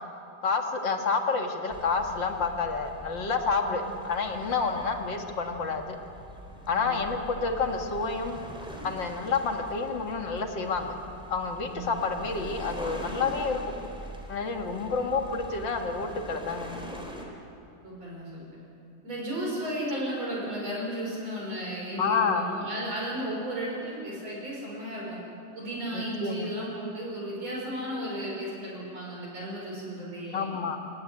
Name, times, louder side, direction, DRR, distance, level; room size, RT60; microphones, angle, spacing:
voice 1, 0.4-5.9 6.7-8.4 8.8-10.9 11.3-13.7 14.3-16.7 22.0-22.4 25.9-26.5 30.3-30.8, left 4 dB, 45° left, 3 dB, 1.7 m, -29 dB
sound 1, 1.7-17.3, equal, ahead, 3.1 m, -43 dB
voice 2, 6.6-7.1 11.7-12.1 17.8-18.6 19.0-25.2 25.5-30.5, right 1 dB, 45° right, -4 dB, 6.5 m, -34 dB
28.0 x 16.5 x 9.8 m, 2.7 s
omnidirectional pair, 4.0 m